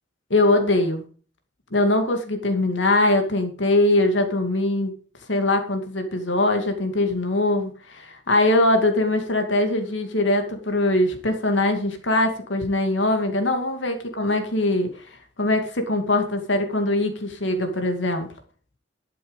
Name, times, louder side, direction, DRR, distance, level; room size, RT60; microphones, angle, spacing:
voice 1, 0.3-1.0 1.7-4.9 5.3-18.3, left 2 dB, 75° left, 6 dB, 2.4 m, -22 dB
12.0 x 7.7 x 5.3 m, 0.41 s
head